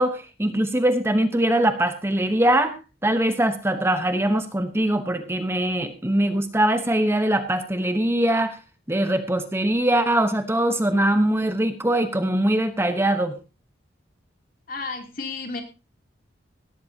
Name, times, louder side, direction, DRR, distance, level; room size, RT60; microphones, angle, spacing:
voice 1, 0.0-2.7 3.0-8.6 8.9-13.3, right 1 dB, 15° right, 8 dB, 1.0 m, -22 dB
voice 2, 14.7-15.6, left 4 dB, 50° left, 3 dB, 3.0 m, -32 dB
18.0 x 13.0 x 2.8 m, 0.31 s
head